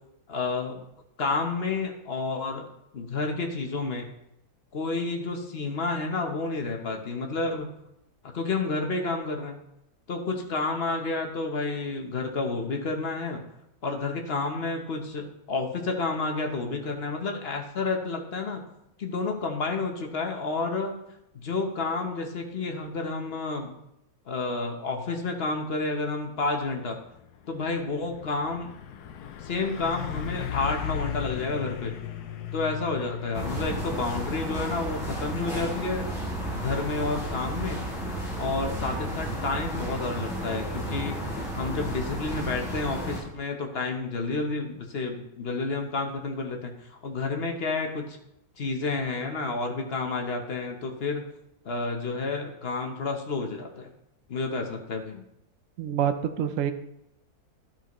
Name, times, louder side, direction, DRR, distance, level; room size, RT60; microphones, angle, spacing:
voice 1, 0.3-0.8 1.2-2.7 2.9-4.1 4.7-7.7 8.3-9.6 10.1-13.4 13.8-18.6 19.0-20.9 21.3-23.7 24.3-27.0 27.5-28.7 29.4-31.9 32.5-36.1 36.5-37.9 38.4-41.2 41.5-48.2 48.6-51.2 51.6-53.9 54.3-55.2, left 3 dB, 45° left, 3 dB, 1.1 m, -30 dB
Truck, 27.1-39.7, left 10 dB, 80° left, 1.2 m, -38 dB
sound 1, 33.3-43.2, right 1 dB, ahead, 3.1 m, -33 dB
voice 2, 55.8-56.7, right 9 dB, 65° right, 9 dB, 0.9 m, -26 dB
12.0 x 5.9 x 3.1 m, 0.81 s
omnidirectional pair, 1.7 m